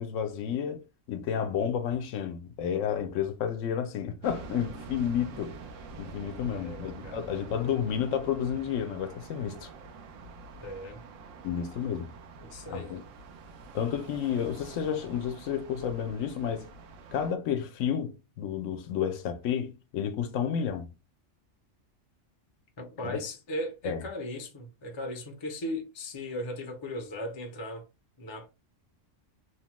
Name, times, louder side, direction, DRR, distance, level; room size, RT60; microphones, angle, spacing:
voice 1, 0.0-5.5 6.0-9.7 11.4-12.1 12.7-13.0 13.7-16.7 17.1-20.9 23.0-23.2 23.8-24.0, left 8 dB, 80° left, 0.9 m, -31 dB
sound 1, 4.2-17.3, right 4 dB, 80° right, 1.0 m, -46 dB
voice 2, 6.4-7.3 10.6-11.0 12.4-13.0 22.8-27.8 28.2-28.5, left 1 dB, 35° left, 0.4 m, -37 dB
3.0 x 2.1 x 2.9 m
omnidirectional pair, 1.3 m